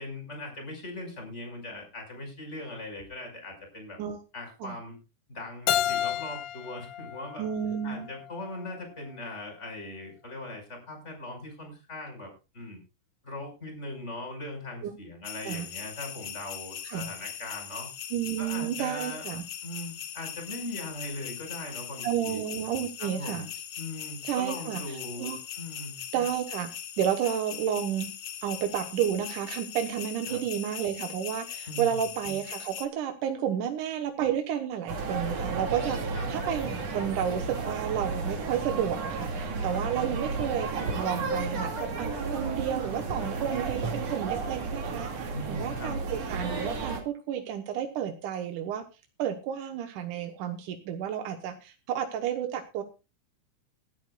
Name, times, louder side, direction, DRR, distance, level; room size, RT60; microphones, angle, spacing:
voice 1, 0.0-4.0 4.3-5.0 5.3-7.5 7.8-12.8 13.2-17.9 18.4-19.3 19.6-22.4 23.0-23.5 23.8-26.0 30.3-30.4 31.6-32.0 36.1-36.3 39.9-40.3 45.3-46.0, left 1 dB, 20° left, 3 dB, 5.9 m, -40 dB
Keyboard (musical), 5.7-8.5, left 11 dB, 80° left, 1.3 m, -31 dB
voice 2, 7.4-8.1 14.8-14.9 15.4-15.7 16.8-17.1 18.1-19.4 22.0-23.5 24.2-25.4 26.1-26.7 27.0-28.1 28.4-48.8 49.2-52.8, right 9 dB, 85° right, 5 dB, 2.8 m, -31 dB
sound 1, 15.2-32.9, left 9 dB, 60° left, 1.9 m, -40 dB
sound 2, 34.9-47.0, right 4 dB, 55° right, 3.5 m, -33 dB
19.0 x 13.0 x 2.5 m, 0.29 s
omnidirectional pair, 3.5 m